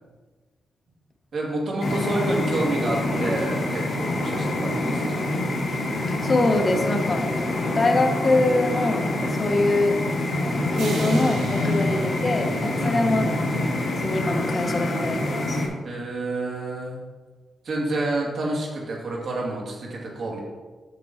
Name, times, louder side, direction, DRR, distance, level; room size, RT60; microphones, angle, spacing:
voice 1, 1.3-5.2 11.6-11.9 12.8-13.1 15.8-17.0 17.6-20.4, right 2 dB, 55° right, -2 dB, 2.1 m, -29 dB
sound 1, 1.8-15.7, left 1 dB, 55° left, 2.0 m, -26 dB
voice 2, 6.2-7.2 7.7-9.9 10.7-15.6, left 2 dB, 30° left, 3 dB, 1.0 m, -24 dB
sound 2, 10.8-13.4, right 3 dB, 90° right, 1.3 m, -39 dB
8.2 x 6.1 x 4.2 m, 1.4 s
wide cardioid pair, 140°, 0 cm